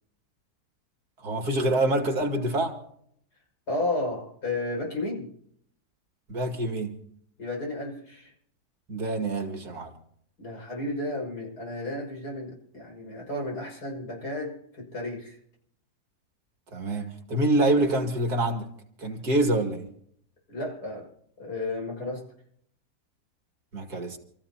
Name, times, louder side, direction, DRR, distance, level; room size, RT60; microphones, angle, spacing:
voice 1, 1.2-2.8 6.3-7.0 8.9-9.9 16.7-18.7 19.0-19.9 23.7-24.2, right 1 dB, 70° right, 2.8 m, -26 dB
voice 2, 3.7-5.3 7.4-8.3 10.4-15.4 20.5-21.1 21.4-22.2, left 2 dB, 75° left, 6.9 m, -33 dB
28.0 x 15.0 x 2.9 m
omnidirectional pair, 1.7 m